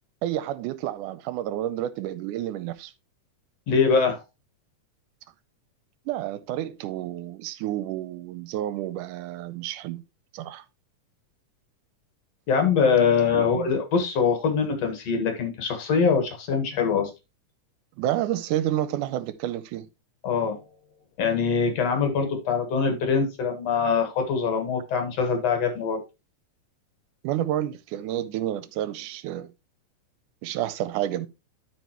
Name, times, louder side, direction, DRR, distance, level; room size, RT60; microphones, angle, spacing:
voice 1, 0.2-2.9 6.1-10.0 10.3-10.6 13.3-13.7 18.0-19.9 27.2-29.5 30.4-31.3, right 12 dB, 80° right, 2.1 m, -30 dB
voice 2, 3.7-4.2 12.5-17.1 20.2-20.6 21.2-26.0, left 5 dB, 60° left, 2.4 m, -23 dB
12.5 x 4.9 x 2.9 m
omnidirectional pair, 3.7 m